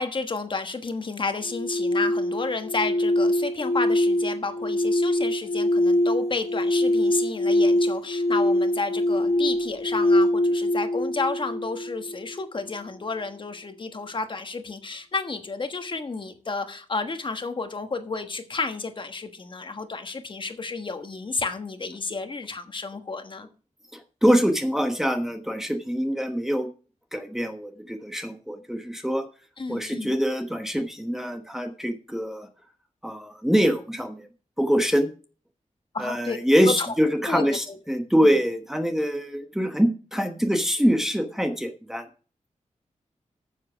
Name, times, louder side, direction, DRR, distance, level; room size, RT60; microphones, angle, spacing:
voice 1, 0.0-23.5 29.6-30.2 35.9-36.4 36.6-36.9 37.2-37.8, left 4 dB, 40° left, 1.3 m, -31 dB
sound 1, 1.4-12.4, left 1 dB, 60° left, 1.0 m, -24 dB
voice 2, 23.9-26.7 27.1-29.3 29.7-32.5 33.0-34.3 34.6-35.1 36.0-42.1, equal, 5° right, 1.1 m, -24 dB
9.8 x 7.4 x 6.0 m
wide cardioid pair, 160°, 13 cm